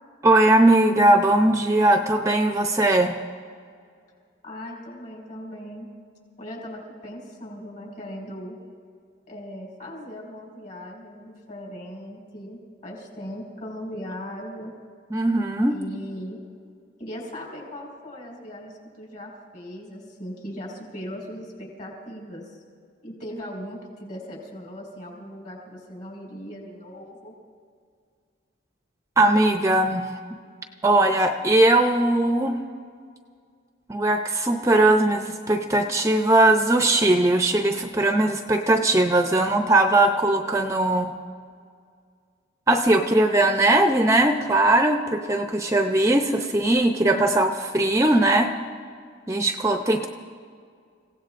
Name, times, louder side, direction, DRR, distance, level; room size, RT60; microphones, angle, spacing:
voice 1, 0.2-3.1 15.1-15.7 29.2-30.2 30.8-32.6 33.9-41.1 42.7-48.5 49.3-50.1, right 2 dB, 15° right, 4 dB, 0.6 m, -19 dB
voice 2, 4.4-5.9 6.4-8.6 9.3-14.7 15.7-16.4 17.0-22.6 23.0-27.3, equal, 45° left, -2 dB, 5.0 m, -38 dB
30.0 x 16.5 x 2.5 m, 2.2 s
head